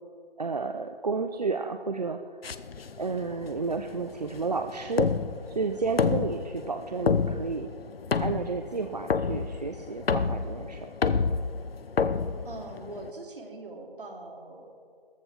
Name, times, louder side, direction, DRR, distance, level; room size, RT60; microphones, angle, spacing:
voice 1, 0.4-2.4 3.0-5.1 5.5-7.7 8.2-10.9, right 4 dB, 45° right, 7 dB, 0.6 m, -31 dB
sound 1, 2.4-13.1, left 5 dB, 75° left, 0.8 m, -30 dB
voice 2, 12.4-14.7, right 2 dB, 60° right, 1 dB, 3.1 m, -42 dB
17.5 x 14.5 x 3.7 m, 2.1 s
figure-of-eight pair, 170°, 29 cm